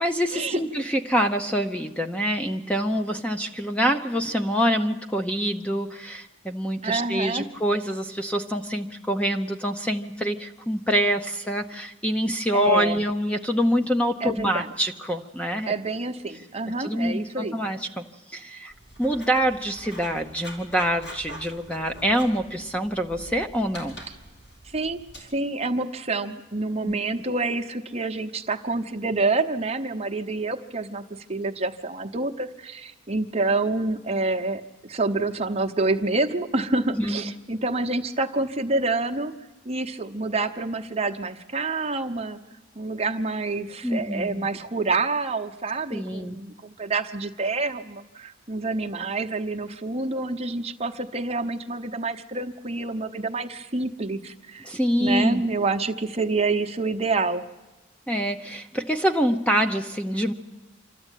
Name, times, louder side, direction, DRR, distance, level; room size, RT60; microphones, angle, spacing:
voice 1, 0.0-15.7 16.8-18.7 19.0-24.0 26.8-26.9 36.9-37.3 43.8-44.5 45.9-46.4 54.6-55.4 58.1-60.3, equal, 5° left, 5 dB, 0.7 m, -25 dB
voice 2, 6.8-7.5 12.5-13.0 14.2-14.7 15.7-17.6 24.6-31.0 31.3-39.3 39.6-42.4 42.7-54.7 55.0-57.4, right 3 dB, 30° right, 5 dB, 1.0 m, -27 dB
Writing, 18.7-25.2, equal, 60° left, 4.4 m, -44 dB
26.5 x 13.0 x 9.1 m, 1.1 s
head